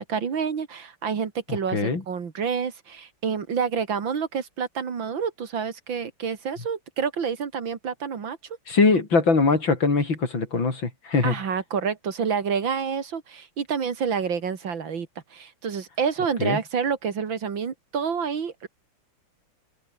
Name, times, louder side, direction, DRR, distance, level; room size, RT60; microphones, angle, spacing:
voice 1, 0.1-8.4 11.2-18.7, right 6 dB, 70° right, 2.9 m, -28 dB
voice 2, 1.5-2.0 8.7-11.4 16.4-16.6, left 4 dB, 70° left, 5.1 m, -22 dB
omnidirectional pair, 2.2 m